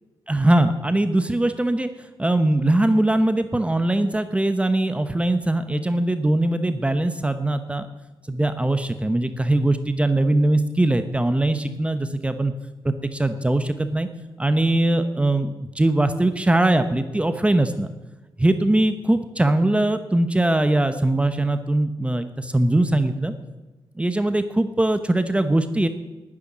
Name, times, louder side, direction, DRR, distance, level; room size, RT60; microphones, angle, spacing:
voice 1, 0.3-1.9 2.2-7.9 8.3-12.5 12.8-14.1 14.4-17.9 18.4-23.3 24.0-25.9, right 1 dB, 15° right, 9 dB, 1.0 m, -21 dB
13.0 x 9.8 x 10.0 m, 1.1 s
cardioid pair, 90°, 9 cm